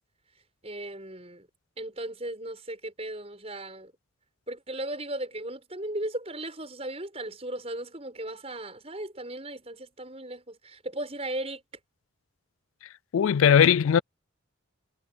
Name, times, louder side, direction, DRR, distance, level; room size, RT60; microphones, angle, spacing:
voice 1, 0.6-1.5 1.8-3.9 4.5-11.6, right 1 dB, 30° right, 7.1 m, -36 dB
voice 2, 13.1-14.0, left 8 dB, 75° left, 0.3 m, -19 dB
head